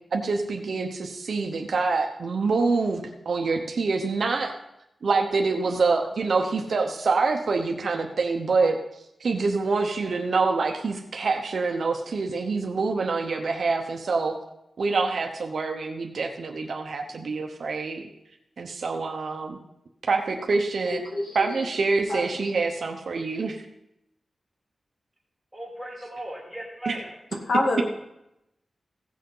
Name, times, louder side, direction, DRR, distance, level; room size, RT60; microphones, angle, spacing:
voice 1, 0.1-4.5 5.0-8.8 9.2-14.4 14.8-18.1 18.6-19.6 20.1-21.0 21.3-23.6 26.8-26.9, right 4 dB, 65° right, 3 dB, 0.9 m, -26 dB
voice 2, 20.9-21.7 22.1-22.5 27.5-27.9, left 1 dB, 60° left, 1 dB, 2.1 m, -27 dB
voice 3, 25.5-27.2, right 1 dB, 5° right, -3 dB, 2.6 m, -37 dB
16.0 x 6.3 x 5.5 m, 0.86 s
wide cardioid pair, 150°, 0 cm